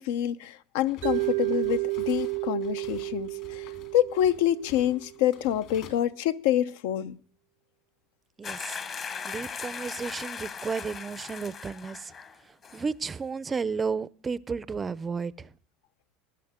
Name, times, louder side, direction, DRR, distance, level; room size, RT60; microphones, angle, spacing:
voice 1, 0.0-7.2, left 11 dB, 80° left, 0.7 m, -27 dB
sound 1, 0.8-5.9, left 6 dB, 60° left, 3.8 m, -49 dB
Mallet percussion, 1.0-5.1, right 29 dB, 80° right, 0.6 m, -31 dB
sound 2, 8.4-12.4 12.6-12.9, left 6 dB, 30° left, 1.0 m, -38 dB
voice 2, 8.4-8.8 9.2-12.1 12.4-15.5, right 5 dB, 20° right, 0.5 m, -33 dB
19.0 x 11.0 x 3.6 m
supercardioid pair, 140°, 0 cm